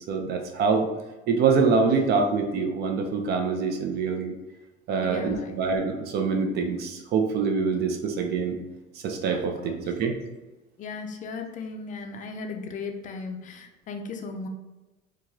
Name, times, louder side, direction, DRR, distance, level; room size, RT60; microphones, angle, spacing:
voice 1, 0.1-0.9 1.3-4.3 4.9-8.6 9.0-10.1, right 5 dB, 55° right, 4 dB, 0.6 m, -25 dB
voice 2, 5.0-5.6 9.3-9.8 10.8-14.5, left 4 dB, 40° left, 4 dB, 0.4 m, -36 dB
4.7 x 2.4 x 2.7 m, 1.1 s
cardioid pair, 140°, 20 cm